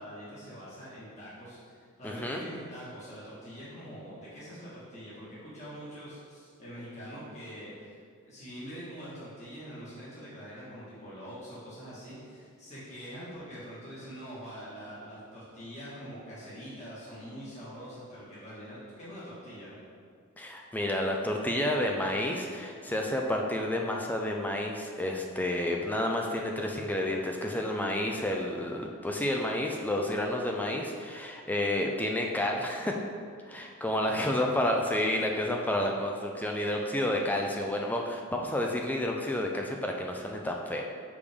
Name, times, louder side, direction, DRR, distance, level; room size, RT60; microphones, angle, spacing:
voice 1, 0.0-19.8 34.1-34.5, equal, 30° left, -9 dB, 1.6 m, -44 dB
voice 2, 2.0-2.4 20.4-33.0 33.4-40.9, left 1 dB, 10° left, 1 dB, 0.4 m, -30 dB
6.5 x 5.1 x 3.5 m, 2.2 s
head